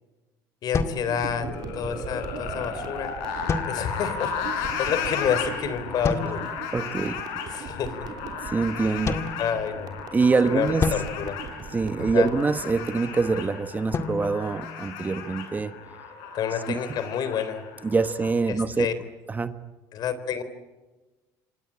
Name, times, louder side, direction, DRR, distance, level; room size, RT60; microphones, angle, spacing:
voice 1, 0.6-1.5 1.7-3.1 3.7-6.5 7.5-8.1 8.9-9.0 9.4-10.0 10.5-11.4 12.1-12.3 16.3-17.6 18.5-18.9 19.9-20.4, left 8 dB, 55° left, 13 dB, 3.8 m, -29 dB
sound 1, 0.7-1.8 3.5-4.3 6.0-6.7 9.1-10.1 10.8-12.3 13.9-15.4, left 4 dB, 35° left, 1.9 m, -32 dB
sound 2, 1.0-13.0, right 7 dB, 55° right, 3.3 m, -41 dB
sound 3, 1.3-18.3, left 6 dB, 85° left, 7.7 m, -35 dB
voice 2, 6.7-7.2 8.4-9.3 10.1-10.9 11.7-15.7 16.7-16.8 17.8-18.9 19.3-19.6, right 4 dB, 20° right, 10 dB, 1.3 m, -25 dB
27.0 x 25.0 x 8.7 m, 1.2 s
cardioid pair, 110°, 8 cm